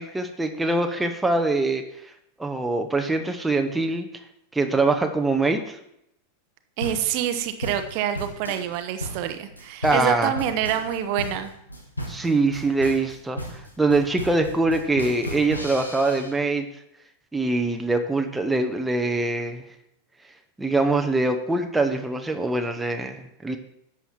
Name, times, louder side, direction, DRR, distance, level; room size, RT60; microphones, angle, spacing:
voice 1, 0.0-1.8 2.4-4.1 4.5-5.8 9.8-10.3 12.1-16.7 17.3-19.7 20.6-23.6, right 2 dB, 5° right, 4 dB, 0.9 m, -23 dB
sound 1, 6.8-16.3, equal, 80° left, 1.8 m, -35 dB
voice 2, 6.8-11.5, right 10 dB, 45° right, 8 dB, 0.8 m, -26 dB
11.0 x 7.3 x 4.4 m, 0.78 s
figure-of-eight pair, 90°, 0 cm